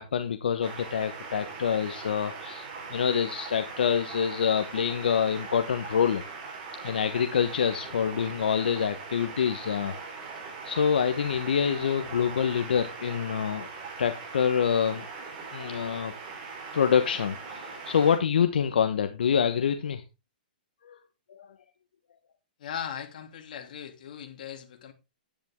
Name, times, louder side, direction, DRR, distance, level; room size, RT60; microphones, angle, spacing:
voice 1, 0.0-6.2 6.8-9.9 10.6-13.7 14.0-15.1 15.5-16.1 16.7-20.0 20.9-21.0 21.3-21.5, left 7 dB, 80° left, 1.2 m, -26 dB
sound 1, 0.6-18.2, right 4 dB, 30° right, 4.2 m, -41 dB
voice 2, 22.6-24.9, left 8 dB, 60° left, 2.8 m, -38 dB
10.5 x 10.5 x 3.6 m
hypercardioid pair, 155°, 5 cm